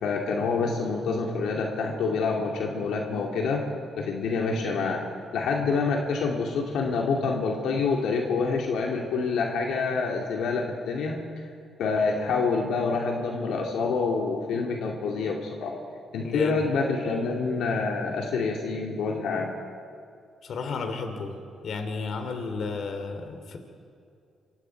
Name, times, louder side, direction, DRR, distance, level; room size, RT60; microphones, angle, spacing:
voice 1, 0.0-3.6 4.0-5.0 5.3-11.2 11.8-15.7 16.1-19.5, left 4 dB, 85° left, 0 dB, 2.5 m, -27 dB
voice 2, 16.2-16.7 20.4-21.4 21.6-23.6, left 4 dB, 65° left, 6 dB, 3.0 m, -32 dB
27.5 x 24.5 x 4.7 m, 2.4 s
cardioid pair, 95°, 0 cm